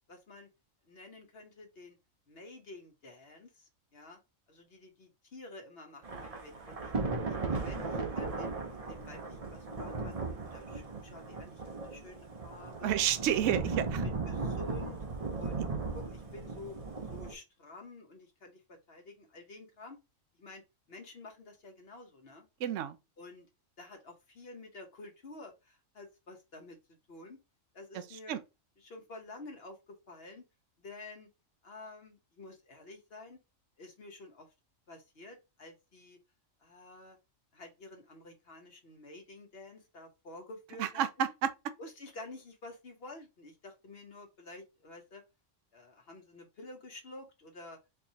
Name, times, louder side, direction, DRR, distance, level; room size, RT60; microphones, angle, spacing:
voice 1, 0.1-0.5 0.9-2.0 2.3-4.2 4.5-6.9 7.3-8.5 8.9-13.0 13.4-13.5 14.0-15.0 15.4-15.6 15.9-16.8 17.1-20.0 20.4-20.6 20.9-22.5 23.2-23.5 23.8-27.4 27.7-28.4 28.8-30.5 30.8-31.3 31.6-33.4 33.8-34.5 34.9-36.2 36.6-37.2 37.5-41.3 41.8-45.2 45.7-47.8, left 2 dB, 55° left, 1.1 m, -50 dB
Thunder / Rain, 6.0-17.3, right 3 dB, 35° right, 0.7 m, -37 dB
voice 2, 12.8-14.0 22.6-23.0 28.3-28.4 40.8-41.5, right 10 dB, 70° right, 0.9 m, -30 dB
4.4 x 3.0 x 2.7 m
omnidirectional pair, 1.4 m